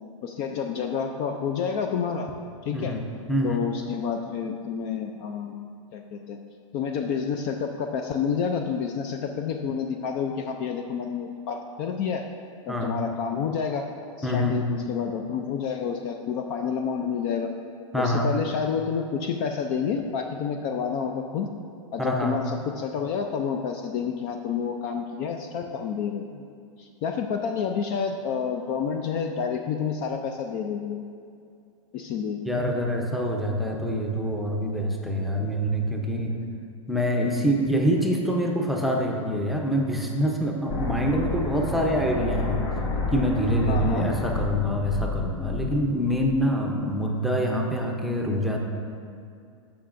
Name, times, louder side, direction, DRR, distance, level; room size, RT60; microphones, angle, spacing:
voice 1, 0.2-2.3 2.6-3.0 3.4-5.6 5.9-6.4 6.7-12.2 12.7-13.8 14.2-17.5 18.0-21.5 21.9-26.4 26.8-31.0 31.9-32.4 43.7-44.1, left 6 dB, 35° left, 4 dB, 0.4 m, -29 dB
voice 2, 3.3-3.7 12.7-12.9 14.2-14.6 17.9-18.3 22.0-22.4 32.4-36.4 36.9-42.6 43.1-48.6, equal, ahead, -1 dB, 0.6 m, -25 dB
sound 1, 40.7-46.7, left 3 dB, 65° left, 1.6 m, -30 dB
14.0 x 5.6 x 2.6 m, 2.4 s
supercardioid pair, 145°, 17 cm